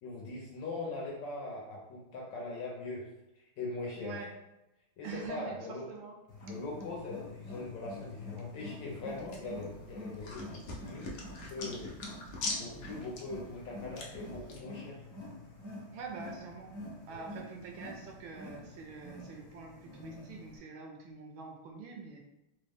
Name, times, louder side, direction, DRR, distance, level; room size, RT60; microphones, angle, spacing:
voice 1, 0.0-3.1 3.4-4.2 5.0-5.9 6.5-11.1 11.5-12.0 12.6-15.0 17.1-17.2, left 2 dB, 70° left, -3 dB, 1.2 m, -41 dB
voice 2, 4.0-4.3 5.0-6.2 15.9-16.7 17.0-22.2, right 5 dB, 75° right, 1 dB, 1.2 m, -45 dB
Wild animals, 6.3-20.6, left 2 dB, 40° left, 1.0 m, -47 dB
sound 1, 8.9-14.6, left 2 dB, 90° left, 0.7 m, -43 dB
3.7 x 2.1 x 3.5 m, 0.91 s
omnidirectional pair, 2.4 m